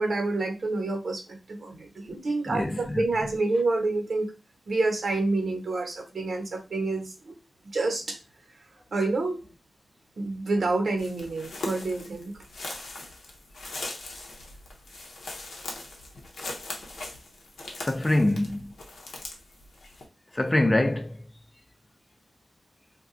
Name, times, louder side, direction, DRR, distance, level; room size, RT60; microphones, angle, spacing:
voice 1, 0.0-4.3 4.7-7.3 7.7-8.2 8.9-9.4 10.2-12.3, right 2 dB, 70° right, 0.9 m, -28 dB
voice 2, 2.5-3.0 17.8-18.7 20.3-21.2, left 1 dB, 25° left, 0.4 m, -24 dB
sound 1, 11.0-20.0, left 2 dB, 85° left, 0.7 m, -40 dB
2.3 x 2.2 x 3.7 m
cardioid pair, 60°, 0 cm